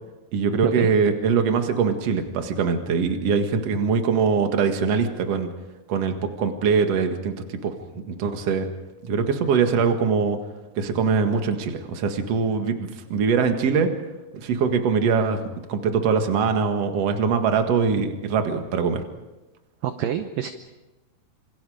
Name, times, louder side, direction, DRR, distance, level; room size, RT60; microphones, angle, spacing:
voice 1, 0.3-5.5 5.9-7.3 7.6-7.7 8.1-8.7 9.0-10.4 10.8-13.9 14.3-15.4 15.7-19.0, right 5 dB, 50° right, 6 dB, 2.3 m, -22 dB
voice 2, 19.8-20.5, right 10 dB, 70° right, 8 dB, 2.3 m, -26 dB
27.0 x 27.0 x 5.0 m, 1.1 s
omnidirectional pair, 4.7 m